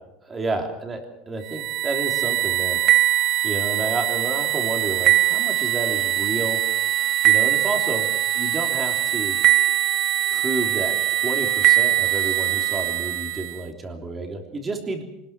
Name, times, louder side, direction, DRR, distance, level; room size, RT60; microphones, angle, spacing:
voice 1, 0.3-2.8 3.4-6.6 7.2-8.1 8.3-9.4 10.3-15.0, right 2 dB, 15° right, 3 dB, 3.4 m, -30 dB
sound 1, 1.5-13.6, right 14 dB, 40° right, 1.2 m, -22 dB
25.5 x 20.0 x 6.1 m, 0.90 s
cardioid pair, 165°, 0 cm